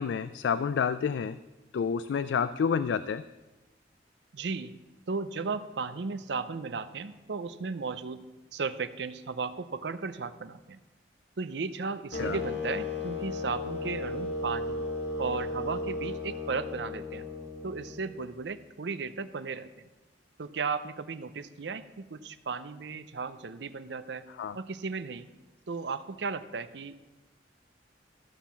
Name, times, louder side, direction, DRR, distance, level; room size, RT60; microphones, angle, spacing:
voice 1, 0.0-1.4 1.7-3.2 12.2-12.4 24.4-24.6, left 6 dB, 80° left, 14 dB, 0.3 m, -29 dB
voice 2, 4.3-4.8 5.1-8.2 8.5-10.8 11.4-14.9 15.2-17.3 17.6-19.9 20.4-24.3 24.5-25.3 25.7-27.0, right 4 dB, 70° right, 13 dB, 0.6 m, -35 dB
sound 1, 12.1-18.2, left 2 dB, 60° left, 2.2 m, -35 dB
13.5 x 5.7 x 7.2 m, 1.1 s
head